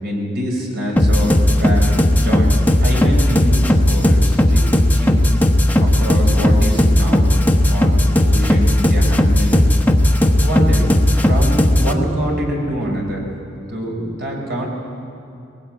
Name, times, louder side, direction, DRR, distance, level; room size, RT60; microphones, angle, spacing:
voice 1, 0.0-5.2 5.8-7.3 7.7-9.6 10.2-13.2 13.7-14.7, equal, 55° right, 0 dB, 4.7 m, -25 dB
sound 1, 1.0-11.9, left 1 dB, 10° left, 1.0 m, -15 dB
20.5 x 17.5 x 8.7 m, 2.6 s
head